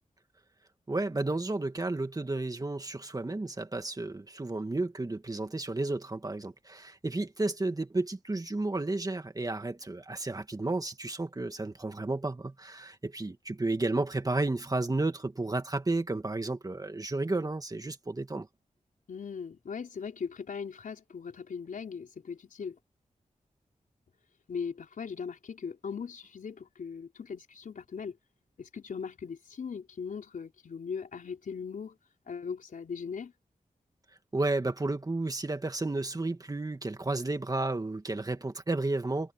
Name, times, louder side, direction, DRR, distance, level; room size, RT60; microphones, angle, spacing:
voice 1, 0.9-18.5 34.3-39.3, right 2 dB, 25° right, 2.2 m, -32 dB
voice 2, 19.1-22.8 24.5-28.2 28.6-32.0 32.3-33.3, left 6 dB, 80° left, 4.4 m, -39 dB
wide cardioid pair, 90°, 14 cm